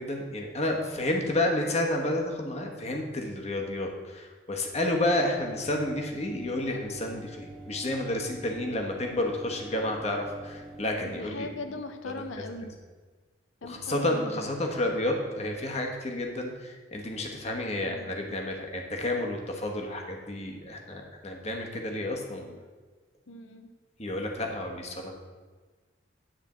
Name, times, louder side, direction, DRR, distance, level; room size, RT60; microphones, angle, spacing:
voice 1, 0.0-11.5 12.1-12.4 13.6-22.4 24.0-25.1, left 1 dB, 35° left, 1 dB, 1.2 m, -30 dB
sound 1, 5.4-10.9, right 1 dB, ahead, 1.2 m, -45 dB
voice 2, 11.0-12.8 13.6-14.5 17.9-18.0 22.4-22.6 23.3-23.7, left 2 dB, 85° left, 7 dB, 0.7 m, -40 dB
10.0 x 4.4 x 7.3 m, 1.4 s
head